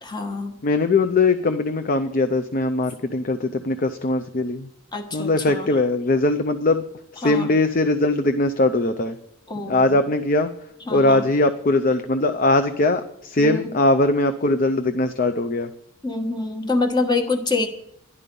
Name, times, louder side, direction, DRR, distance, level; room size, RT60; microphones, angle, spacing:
voice 1, 0.0-0.6 4.9-5.7 7.2-7.5 9.5-10.0 10.9-11.2 13.4-13.7 16.0-17.7, left 3 dB, 20° left, 6 dB, 1.2 m, -26 dB
voice 2, 0.6-4.7 5.1-6.8 7.1-9.2 9.6-10.5 10.9-15.7, left 2 dB, 45° left, 8 dB, 0.5 m, -21 dB
12.5 x 11.0 x 5.3 m, 0.76 s
head